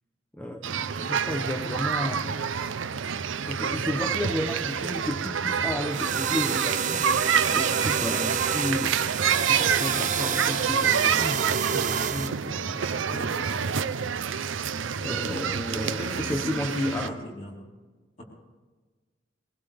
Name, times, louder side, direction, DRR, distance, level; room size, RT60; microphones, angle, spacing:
voice 1, 0.3-2.4 3.4-14.7 15.0-17.1, left 1 dB, 10° left, 3 dB, 0.7 m, -33 dB
sound 1, 0.6-17.1, right 7 dB, 90° right, 0.6 m, -28 dB
sound 2, 5.9-12.3, right 7 dB, 40° right, 0.6 m, -29 dB
voice 2, 15.7-17.7, left 1 dB, 40° left, -3 dB, 4.1 m, -38 dB
21.0 x 19.5 x 3.5 m, 1.3 s
head